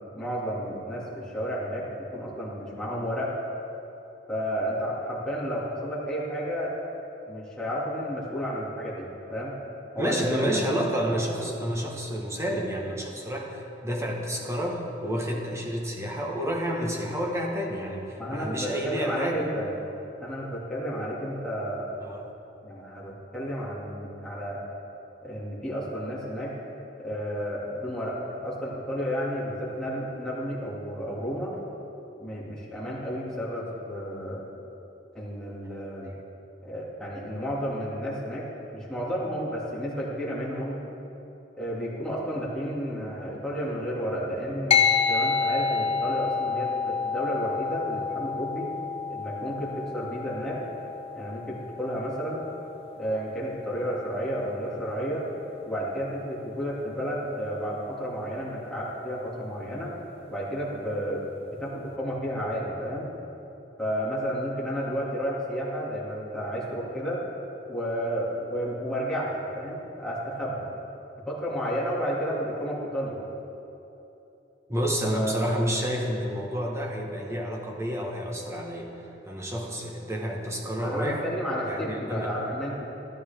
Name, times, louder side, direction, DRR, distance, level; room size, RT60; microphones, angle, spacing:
voice 1, 0.1-3.3 4.3-6.7 7.3-9.6 9.9-10.6 11.1-11.9 18.2-19.7 20.2-21.9 22.6-24.6 25.2-26.6 27.0-31.6 32.2-34.4 35.1-36.1 36.6-40.8 41.6-48.7 49.1-50.6 51.1-52.4 52.9-55.2 55.6-59.9 60.3-61.2 61.5-63.1 63.8-67.2 67.7-70.7 71.3-73.2 75.1-75.5 80.8-82.9, equal, 5° left, -8 dB, 2.3 m, -32 dB
voice 2, 10.0-19.5 22.0-22.3 74.7-81.3 81.6-82.3, equal, 15° right, -1 dB, 1.3 m, -30 dB
sound 1, 44.7-54.4, left 6 dB, 30° left, 0.7 m, -29 dB
13.0 x 12.5 x 3.5 m, 3.0 s
head